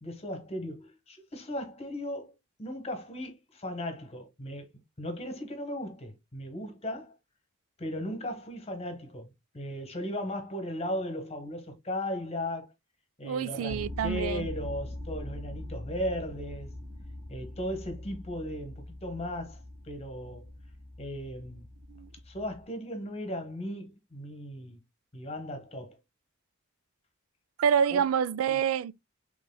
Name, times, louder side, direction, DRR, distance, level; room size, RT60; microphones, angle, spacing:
voice 1, 0.0-2.3 2.6-4.7 5.0-7.1 7.8-9.3 9.5-12.7 13.2-16.7 17.3-20.5 21.0-21.7 22.3-24.8 25.1-26.0 27.9-28.0 28.5-28.6, equal, 30° left, 1.1 m, -37 dB
voice 2, 13.2-14.5 21.9-22.1 27.6-28.9, right 7 dB, 85° right, 0.3 m, -27 dB
sound 1, 13.7-22.6, left 1 dB, 40° right, 2.4 m, -42 dB
6.1 x 3.1 x 2.2 m
head